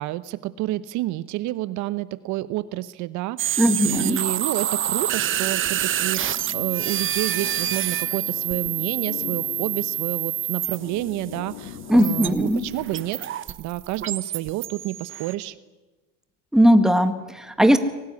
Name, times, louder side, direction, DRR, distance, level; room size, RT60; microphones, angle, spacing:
voice 1, 0.0-13.2 13.6-15.6, right 16 dB, 60° right, 15 dB, 1.0 m, -29 dB
sound 1, 3.4-11.4 12.0-15.3, right 11 dB, 35° right, 1.1 m, -27 dB
voice 2, 3.6-4.2 11.9-12.6 16.5-17.8, equal, ahead, 8 dB, 1.9 m, -18 dB
sound 2, 6.1-13.1, left 9 dB, 90° left, 2.9 m, -42 dB
24.0 x 18.5 x 9.8 m, 1.2 s
supercardioid pair, 115°, 33 cm